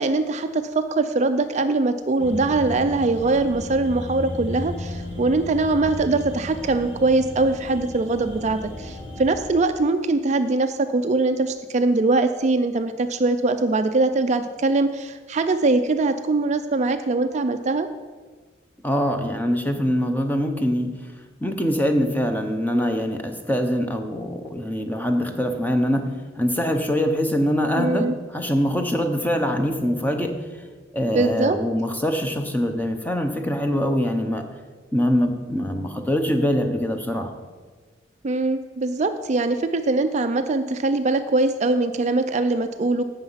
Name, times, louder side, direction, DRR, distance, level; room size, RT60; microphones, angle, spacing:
voice 1, 0.0-17.9 27.8-28.1 31.1-31.6 38.2-43.0, right 3 dB, 40° right, 9 dB, 0.4 m, -22 dB
sound 1, 2.2-9.5, left 1 dB, 65° left, 2.0 m, -35 dB
voice 2, 18.8-20.9 21.4-26.1 26.4-30.7 30.9-34.4 34.9-37.3, equal, 10° left, 5 dB, 0.9 m, -23 dB
11.5 x 8.0 x 5.7 m, 1.4 s
head